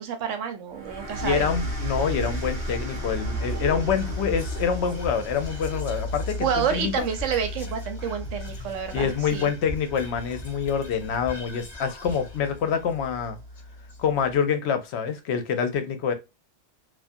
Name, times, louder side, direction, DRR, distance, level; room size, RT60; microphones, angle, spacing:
voice 1, 0.0-1.5 6.4-9.5, right 7 dB, 85° right, 1.0 m, -29 dB
sound 1, 0.7-7.8, right 3 dB, 20° right, 0.6 m, -36 dB
sound 2, 1.1-14.4, left 1 dB, 60° right, 0.8 m, -36 dB
voice 2, 1.2-7.1 8.6-13.4 14.0-16.1, left 7 dB, 70° left, 0.8 m, -26 dB
Whispering, 1.9-14.4, left 2 dB, 35° left, 0.5 m, -42 dB
2.4 x 2.4 x 2.5 m
omnidirectional pair, 1.2 m